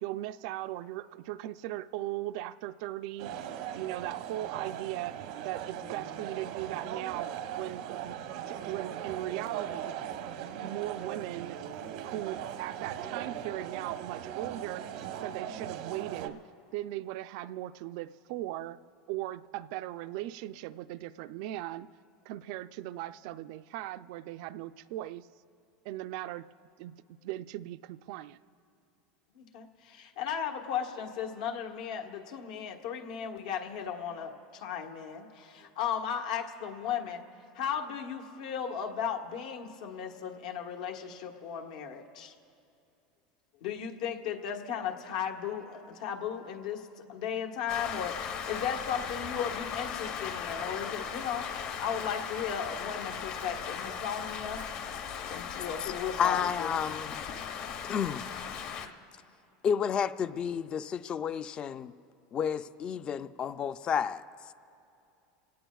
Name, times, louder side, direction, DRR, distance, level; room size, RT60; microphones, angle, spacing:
voice 1, 0.0-3.3 3.8-5.2 5.4-8.2 8.5-9.9 10.4-11.6 12.0-14.9 15.2-16.4 16.7-18.8 19.1-21.9 22.3-25.3 25.8-26.5 26.8-28.4, right 15 dB, 60° right, 0.4 m, -38 dB
sound 1, 3.2-16.3, right 9 dB, 80° right, 0.9 m, -39 dB
voice 2, 29.3-37.2 37.5-42.3 43.6-54.6 55.3-56.7, left 8 dB, 85° left, 1.4 m, -36 dB
Rain, 47.7-58.9, left 7 dB, 50° left, 1.0 m, -38 dB
voice 3, 56.2-57.2 57.8-58.3 59.6-61.9 62.3-64.2, left 7 dB, 25° left, 0.4 m, -31 dB
27.5 x 18.0 x 2.3 m
supercardioid pair, 155°, 4 cm